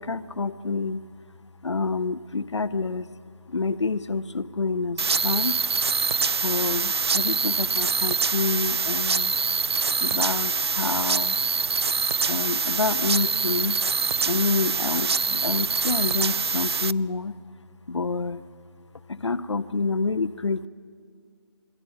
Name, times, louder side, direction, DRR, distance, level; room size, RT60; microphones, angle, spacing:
voice 1, 0.0-6.0 6.4-11.5 12.3-13.8 14.3-18.5 18.9-20.7, left 4 dB, 80° left, 13 dB, 0.7 m, -28 dB
sound 1, 5.0-16.9, right 5 dB, 65° right, 0.5 m, -25 dB
26.5 x 22.5 x 5.5 m, 2.2 s
figure-of-eight pair, 160°, 15 cm